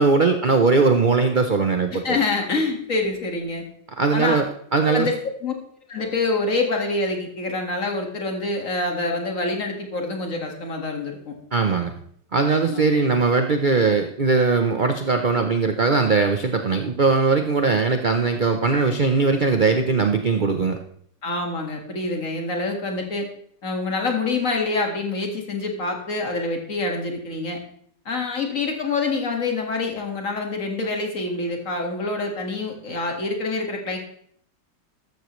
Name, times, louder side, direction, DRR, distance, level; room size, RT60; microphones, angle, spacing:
voice 1, 0.0-2.2 4.0-4.4 4.7-5.1 11.5-12.0 12.3-20.8, right 4 dB, 60° right, 6 dB, 0.5 m, -20 dB
voice 2, 1.9-3.6 4.1-4.4 4.8-5.2 5.4-5.5 5.9-11.4 12.6-13.2 21.2-23.3 23.6-27.6 28.1-34.0, left 3 dB, 45° left, 2 dB, 2.2 m, -26 dB
13.5 x 13.0 x 3.2 m, 0.65 s
omnidirectional pair, 2.0 m